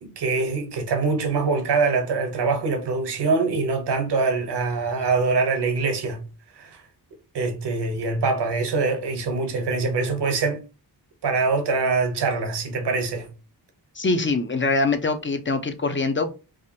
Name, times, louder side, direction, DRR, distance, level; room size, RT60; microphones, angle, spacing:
voice 1, 0.0-6.2 6.6-6.8 7.3-10.6 11.2-13.3, right 4 dB, 80° right, 1.1 m, -24 dB
voice 2, 14.0-16.3, left 3 dB, 30° left, 0.6 m, -23 dB
4.8 x 2.5 x 2.8 m
wide cardioid pair, 85°, 40 cm